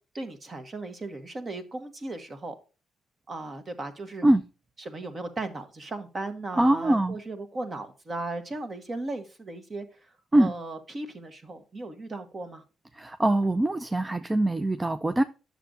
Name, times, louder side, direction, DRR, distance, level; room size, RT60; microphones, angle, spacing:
voice 1, 0.1-2.6 3.3-4.3 4.8-12.6, right 2 dB, 35° right, 1.6 m, -37 dB
voice 2, 6.6-7.2 10.3-10.5 12.9-15.2, right 1 dB, 15° right, 0.5 m, -23 dB
9.8 x 6.9 x 2.5 m
cardioid pair, 90°, 0 cm